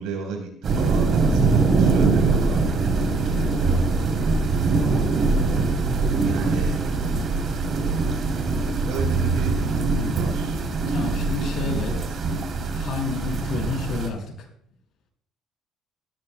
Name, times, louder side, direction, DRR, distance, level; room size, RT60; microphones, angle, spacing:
voice 1, 0.0-2.9 6.2-6.9 8.8-10.6 11.6-12.3, right 5 dB, 90° right, 1 dB, 4.3 m, -32 dB
sound 1, 0.6-14.1, right 3 dB, 45° right, 3.3 m, -22 dB
voice 2, 3.3-3.7 10.9-12.0 12.7-14.5, left 4 dB, 60° left, 2 dB, 5.9 m, -30 dB
21.5 x 14.5 x 2.3 m, 0.65 s
cardioid pair, 115°, 0 cm